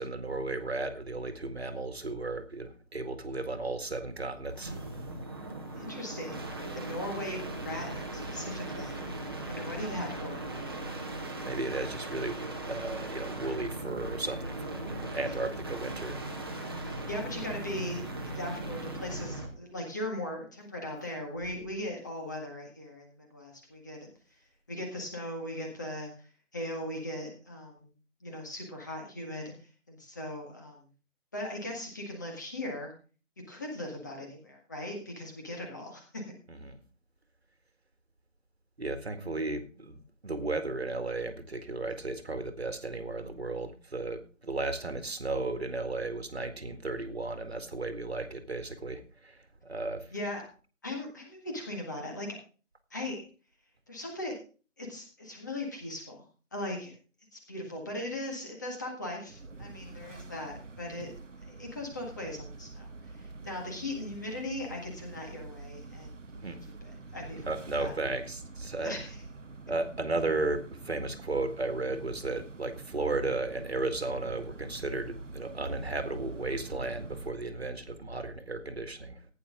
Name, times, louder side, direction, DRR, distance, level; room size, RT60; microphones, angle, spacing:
voice 1, 0.0-4.8 9.7-9.8 11.4-16.2 36.5-36.8 38.8-40.0 40.2-50.1 66.4-66.6 67.4-69.0 69.7-79.3, right 2 dB, 55° right, 9 dB, 2.1 m, -34 dB
sound 1, 4.5-19.6 21.3-21.8, right 2 dB, 20° right, 1.5 m, -38 dB
voice 2, 5.7-6.4 6.7-10.8 16.8-24.1 24.7-27.9 28.2-30.9 31.3-32.9 33.5-36.2 50.1-50.5 50.8-52.4 52.9-53.3 53.9-54.4 54.8-56.2 56.5-56.9 57.3-61.1 61.4-62.9 63.1-66.4 66.8-67.5 67.8-67.9 68.8-69.2, left 1 dB, 15° left, 1 dB, 1.7 m, -39 dB
sound 2, 59.3-77.3, right 3 dB, 70° right, 1.2 m, -46 dB
15.5 x 9.8 x 3.7 m, 0.36 s
figure-of-eight pair, 170°, 38 cm